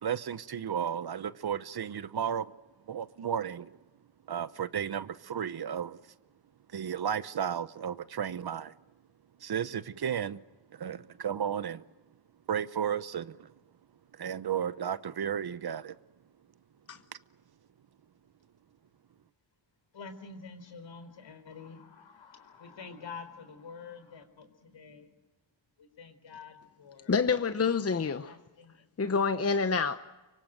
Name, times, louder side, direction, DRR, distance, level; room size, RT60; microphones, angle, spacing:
voice 1, 0.0-2.5 2.9-3.8 4.3-6.0 6.7-8.7 9.4-10.4 10.7-11.8 12.5-13.5 14.1-16.0, right 8 dB, 55° right, 0.9 m, -33 dB
voice 2, 19.9-25.1 25.8-28.9, left 5 dB, 70° left, 4.3 m, -48 dB
voice 3, 27.1-28.4 29.0-30.0, left 5 dB, 30° left, 1.0 m, -27 dB
24.5 x 24.0 x 7.9 m
cardioid pair, 90°, 46 cm